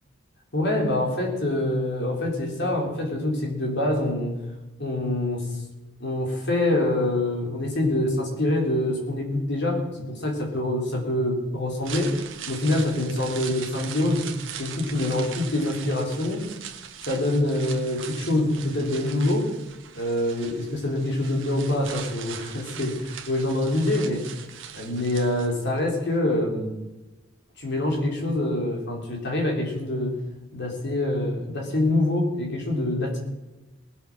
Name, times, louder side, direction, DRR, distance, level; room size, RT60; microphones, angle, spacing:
voice 1, 0.5-4.4 4.8-5.5 6.0-12.2 12.5-14.3 14.6-16.4 17.1-19.5 19.9-24.3 24.7-26.8 27.6-30.1 30.5-33.2, left 1 dB, 55° left, 0 dB, 3.8 m, -25 dB
sound 1, 11.6-25.8 26.1-26.2, right 8 dB, 70° right, 1.5 m, -40 dB
19.5 x 8.1 x 6.3 m, 1.0 s
head